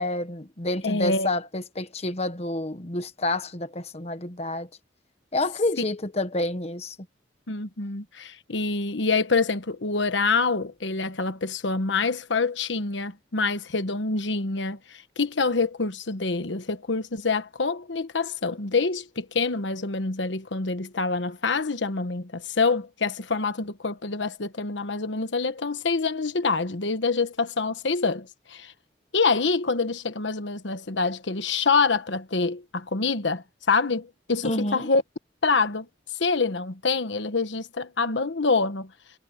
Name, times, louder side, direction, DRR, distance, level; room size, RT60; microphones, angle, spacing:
voice 1, 0.0-4.7 5.3-6.9 34.4-34.9, left 2 dB, 35° left, 1.3 m, -29 dB
voice 2, 0.8-1.3 7.5-28.7 29.1-35.0 35.4-35.9 36.2-38.9, left 4 dB, 90° left, 1.2 m, -26 dB
head